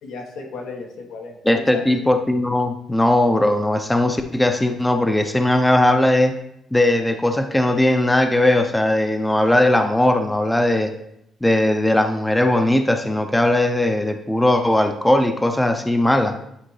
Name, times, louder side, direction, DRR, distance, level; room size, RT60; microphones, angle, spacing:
voice 1, 0.0-2.1, left 4 dB, 85° left, 1 dB, 1.3 m, -35 dB
voice 2, 1.5-6.3 6.7-10.9 11.4-16.3, left 1 dB, 10° left, 5 dB, 0.6 m, -18 dB
9.8 x 3.7 x 3.3 m, 0.78 s
cardioid pair, 90°, 0 cm